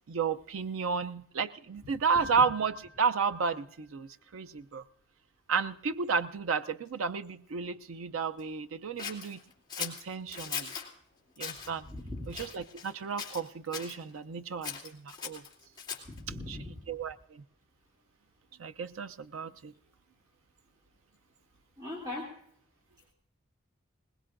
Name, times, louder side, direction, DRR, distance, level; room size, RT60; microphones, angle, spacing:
voice 1, 0.1-4.8 5.5-9.4 9.8-10.7 11.4-11.8 12.3-15.4 16.5-16.6 16.9-17.4 18.6-19.7, right 5 dB, 85° right, 10 dB, 0.5 m, -32 dB
Keyboard (musical), 2.1-3.9, right 2 dB, 60° right, 2.7 m, -50 dB
Scissors, 9.0-10.9 11.3-11.7 12.3-12.9 13.2-14.0 14.6-16.2, left 7 dB, 20° left, 2.6 m, -39 dB
voice 2, 11.9-12.2 16.1-16.7 21.8-22.3, left 2 dB, 20° right, -4 dB, 2.7 m, -39 dB
21.5 x 20.0 x 2.5 m, 0.67 s
head